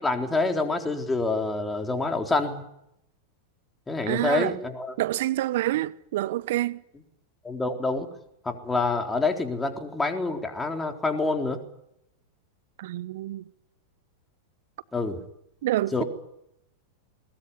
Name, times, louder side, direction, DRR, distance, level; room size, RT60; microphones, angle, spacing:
voice 1, 0.0-2.6 3.9-4.9 7.4-8.1 8.4-11.6 14.9-15.2 15.9-16.0, left 3 dB, 10° left, 4.0 m, -27 dB
voice 2, 4.1-4.5 5.0-6.8 12.8-13.4 15.6-16.0, right 15 dB, 65° right, 0.9 m, -27 dB
21.0 x 20.5 x 9.8 m
hypercardioid pair, 95°, 0 cm